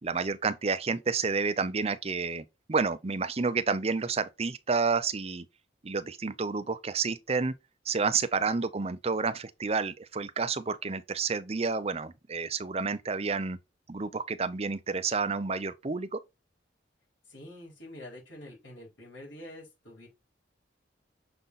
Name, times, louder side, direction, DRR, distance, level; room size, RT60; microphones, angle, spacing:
voice 1, 0.0-5.5 5.8-7.5 7.9-13.6 13.9-16.2, right 4 dB, 35° right, 0.6 m, -30 dB
voice 2, 17.3-20.1, left 1 dB, 85° left, 4.5 m, -46 dB
6.8 x 3.9 x 4.0 m
head